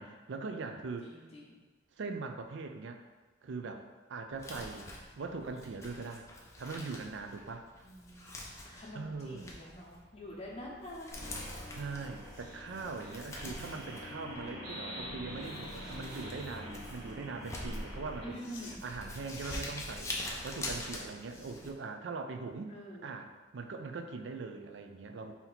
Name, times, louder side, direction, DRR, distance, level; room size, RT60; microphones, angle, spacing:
voice 1, 0.0-1.1 2.0-3.0 3.4-6.3 6.6-7.7 8.9-9.5 11.7-18.5 18.8-20.1 20.4-25.3, right 4 dB, 65° right, 6 dB, 0.4 m, -41 dB
voice 2, 1.0-1.5 7.8-11.2 18.2-18.8 22.7-23.1, equal, 30° left, -4 dB, 0.9 m, -47 dB
Crumpling crinkling, 4.3-21.7, left 1 dB, 15° left, 0.5 m, -45 dB
sound 1, 11.1-18.3, equal, 40° right, 1.2 m, -45 dB
sound 2, 11.9-14.1 16.2-17.3 18.1-21.4 21.8-21.9, left 2 dB, 70° left, 0.8 m, -54 dB
4.3 x 2.8 x 4.0 m, 1.3 s
head